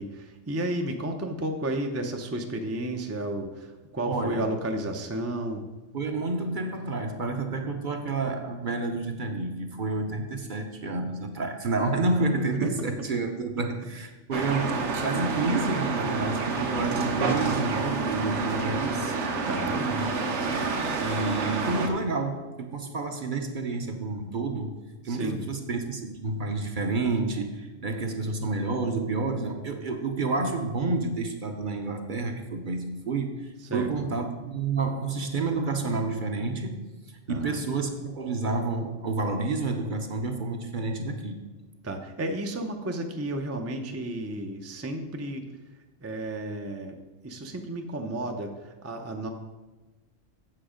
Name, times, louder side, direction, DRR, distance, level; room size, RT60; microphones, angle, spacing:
voice 1, 0.0-5.6 12.6-12.7 16.0-16.1 19.5-19.9 25.1-25.4 33.7-33.9 37.3-37.6 41.8-45.5 46.0-47.0 47.2-49.3, right 1 dB, 20° right, 4 dB, 0.4 m, -32 dB
voice 2, 4.0-4.5 5.9-19.2 19.8-20.2 21.0-24.8 25.0-36.8 37.3-41.4, right 3 dB, 45° right, 5 dB, 0.8 m, -29 dB
sound 1, 14.3-21.9, right 4 dB, 65° right, 1.1 m, -28 dB
7.6 x 7.0 x 5.0 m, 1.2 s
omnidirectional pair, 1.3 m